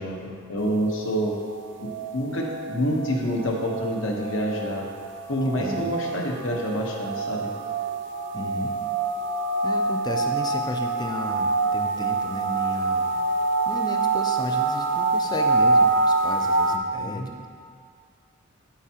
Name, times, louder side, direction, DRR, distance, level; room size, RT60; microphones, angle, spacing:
voice 1, 0.0-1.3 1.8-4.9 5.3-7.5 17.0-17.3, equal, 65° left, -1 dB, 1.1 m, -27 dB
sound 1, 0.6-16.8, right 3 dB, 55° right, 0.5 m, -26 dB
voice 2, 8.3-8.8 9.6-13.2 13.7-17.5, left 1 dB, 20° left, 4 dB, 0.4 m, -34 dB
13.0 x 4.6 x 2.9 m, 2.1 s
head